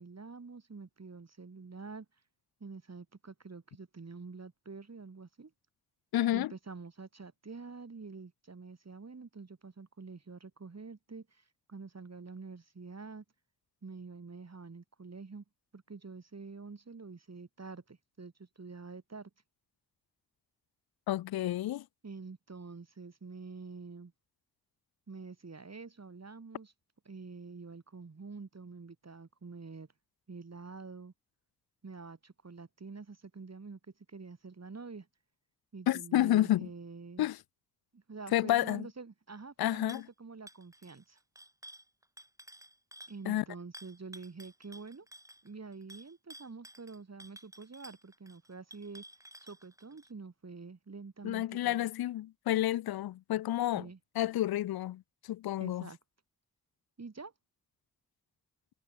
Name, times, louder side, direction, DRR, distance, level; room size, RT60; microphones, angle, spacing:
voice 1, 0.0-2.1 2.6-5.5 6.3-13.2 13.8-15.4 15.7-19.3 22.0-24.1 25.1-26.7 27.0-29.9 30.3-31.1 31.8-35.1 35.7-37.3 37.9-41.2 43.1-45.1 45.4-49.0 49.4-51.8 53.7-54.0 55.6-56.0 57.0-57.3, right 4 dB, 45° right, 2.8 m, -47 dB
voice 2, 6.1-6.5 21.1-21.8 35.9-36.7 37.2-37.4 38.3-38.9 39.6-40.1 43.3-43.4 51.2-53.9 54.2-55.0 55.3-55.8, left 14 dB, 80° left, 0.5 m, -30 dB
sound 1, 39.9-40.1 40.5-43.2 43.7-50.1, right 1 dB, 10° right, 2.0 m, -53 dB
cardioid pair, 40°, 36 cm